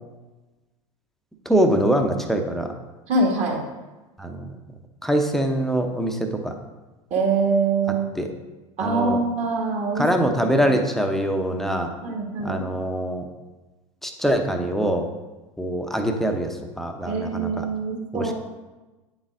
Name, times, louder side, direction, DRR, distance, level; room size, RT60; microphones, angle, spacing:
voice 1, 1.5-2.7 4.2-4.6 5.0-6.5 8.1-8.3 8.8-9.2 9.9-11.9 12.4-13.3 14.0-15.1 15.6-17.6 18.1-18.3, right 1 dB, ahead, 4 dB, 0.8 m, -23 dB
voice 2, 3.1-3.6 7.1-8.2 8.8-10.0 12.0-12.6 17.0-18.3, right 3 dB, 40° right, -1 dB, 2.0 m, -24 dB
9.1 x 7.1 x 2.6 m, 1.2 s
figure-of-eight pair, 80°, 18 cm